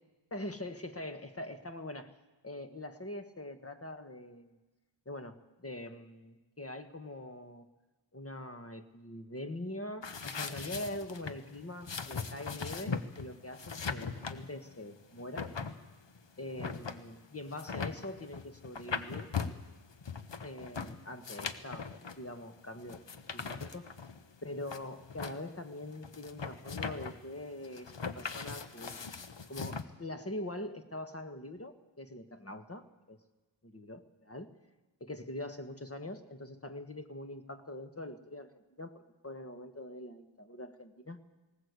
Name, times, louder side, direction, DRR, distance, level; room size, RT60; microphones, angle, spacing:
voice 1, 0.3-2.2 2.4-4.6 5.0-7.7 8.1-15.5 16.4-19.3 20.4-21.9 22.2-23.0 23.3-23.9 24.4-29.0 29.5-33.2 33.7-34.5 35.0-38.5 38.8-41.2, left 1 dB, 30° left, 9 dB, 1.6 m, -43 dB
sound 1, 10.0-29.8, left 5 dB, 65° left, 1.2 m, -40 dB
19.5 x 18.5 x 8.3 m, 1.1 s
wide cardioid pair, 60°, 46 cm